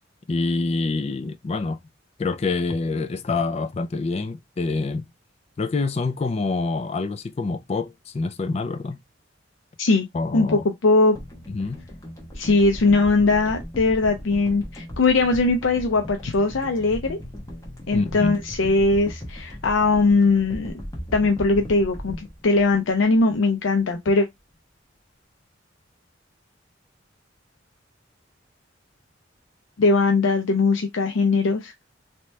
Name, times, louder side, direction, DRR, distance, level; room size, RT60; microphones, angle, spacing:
voice 1, 0.3-1.8 2.2-5.1 5.6-9.0 10.1-10.6 11.5-11.8 17.9-18.3, left 3 dB, 35° left, 0.3 m, -26 dB
voice 2, 10.3-11.2 12.4-17.2 17.9-20.7 21.1-24.3 29.8-31.7, left 3 dB, 85° left, 0.5 m, -20 dB
sound 1, 11.1-23.5 23.8-23.9, equal, 15° left, 1.0 m, -37 dB
3.1 x 2.9 x 3.2 m
head